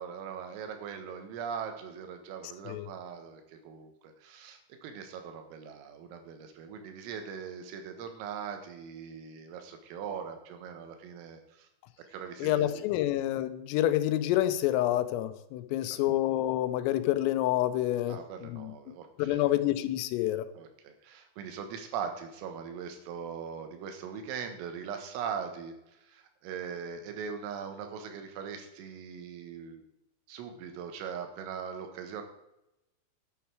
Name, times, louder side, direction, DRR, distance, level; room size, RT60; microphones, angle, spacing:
voice 1, 0.0-11.7 12.1-13.0 15.8-16.1 18.1-19.5 20.5-29.8 30.3-32.2, right 7 dB, 85° right, 6 dB, 4.1 m, -41 dB
voice 2, 12.4-18.2 18.5-18.7 19.2-20.4, left 13 dB, 85° left, 12 dB, 3.4 m, -28 dB
11.5 x 9.1 x 4.7 m, 0.88 s
omnidirectional pair, 5.8 m